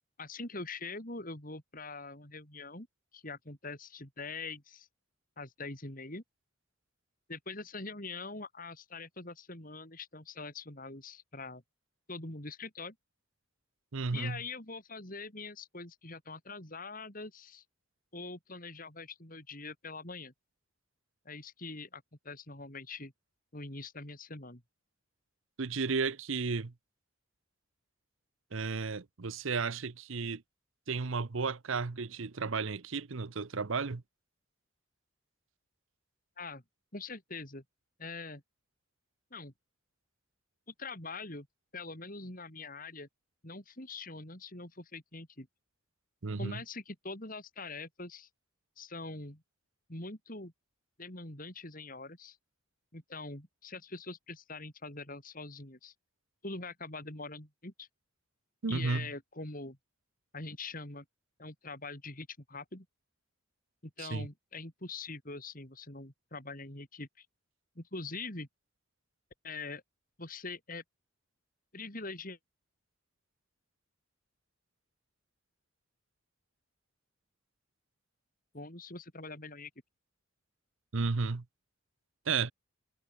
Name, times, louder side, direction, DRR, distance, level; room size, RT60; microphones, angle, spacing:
voice 1, 0.2-2.9 3.1-4.9 5.4-6.2 7.3-11.6 12.1-12.9 14.1-17.6 18.1-20.3 21.2-23.1 23.5-24.6 36.4-36.6 36.9-37.6 38.0-38.4 39.3-39.5 40.7-41.5 41.7-43.1 43.4-45.5 46.4-48.3 48.8-49.4 49.9-50.5 51.0-52.4 52.9-55.9 56.4-57.9 58.7-59.8 60.3-61.0 61.4-62.9 63.8-67.3 67.8-68.5 69.4-69.8 70.2-70.8 71.7-72.4 78.5-79.7, left 3 dB, 40° left, 4.2 m, -43 dB
voice 2, 13.9-14.4 25.6-26.7 28.5-30.4 30.9-34.0 46.2-46.6 58.6-59.1 64.0-64.3 80.9-81.4 82.3-82.5, right 4 dB, 70° right, 0.8 m, -33 dB
head